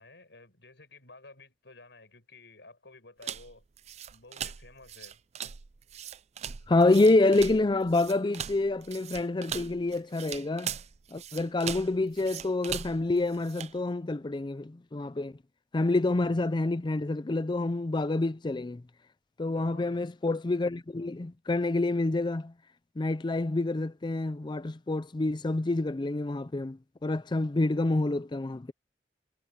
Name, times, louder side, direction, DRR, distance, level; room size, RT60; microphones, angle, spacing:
voice 1, 0.0-3.6 4.1-5.2 19.5-20.0, left 3 dB, 75° left, 5.0 m, -53 dB
sound 1, 3.2-13.8, right 9 dB, 35° right, 0.5 m, -40 dB
voice 2, 6.7-10.7 11.1-15.3 15.7-18.8 19.4-22.5 23.0-26.8 27.0-28.7, left 2 dB, 25° left, 0.4 m, -27 dB
head